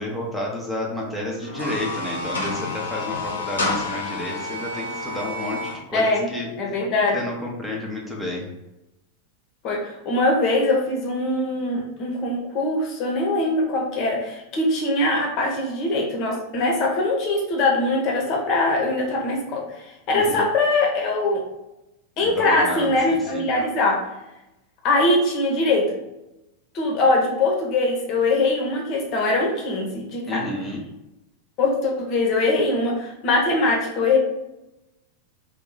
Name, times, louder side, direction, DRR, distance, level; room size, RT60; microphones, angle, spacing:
voice 1, 0.0-6.5 7.1-8.5 20.1-20.4 22.2-23.5 30.3-30.8, left 1 dB, ahead, -4 dB, 0.7 m, -31 dB
sound 1, 1.4-5.8, left 2 dB, 70° left, 0.7 m, -29 dB
voice 2, 5.9-6.3 6.6-7.3 9.6-21.4 22.2-24.0 24.8-26.0 26.7-30.4 31.6-34.2, left 2 dB, 40° left, 0 dB, 0.8 m, -22 dB
2.8 x 2.2 x 3.8 m, 0.94 s
figure-of-eight pair, 90°, 0 cm